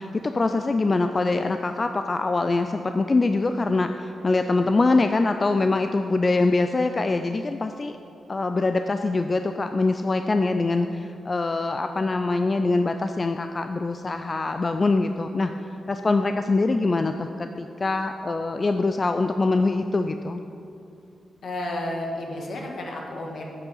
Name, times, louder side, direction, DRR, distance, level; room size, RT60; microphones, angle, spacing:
voice 1, 0.0-8.0 8.3-15.5 15.9-20.4, left 3 dB, 35° left, 7 dB, 0.3 m, -24 dB
voice 2, 21.4-23.4, left 1 dB, 70° left, 0 dB, 1.5 m, -31 dB
8.1 x 7.0 x 5.6 m, 2.6 s
cardioid pair, 75°, 0 cm